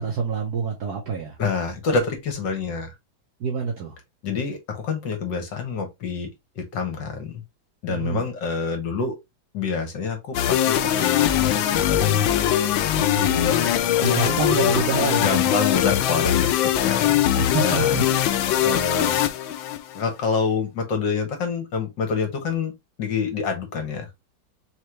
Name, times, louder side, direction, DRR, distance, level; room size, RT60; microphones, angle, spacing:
voice 1, 0.0-1.3 3.4-3.9 7.9-8.2 13.0-13.7 14.0-15.5 17.3-18.0, right 5 dB, 60° right, 1.4 m, -27 dB
voice 2, 1.4-2.9 4.2-6.3 6.6-7.4 7.8-9.2 9.5-12.3 13.2-14.8 15.2-17.2 17.6-18.0 18.6-19.2 19.9-22.7 23.0-24.1, left 5 dB, 65° left, 1.9 m, -27 dB
sound 1, 10.3-20.0, left 11 dB, 85° left, 1.4 m, -21 dB
4.5 x 3.2 x 3.1 m
omnidirectional pair, 2.1 m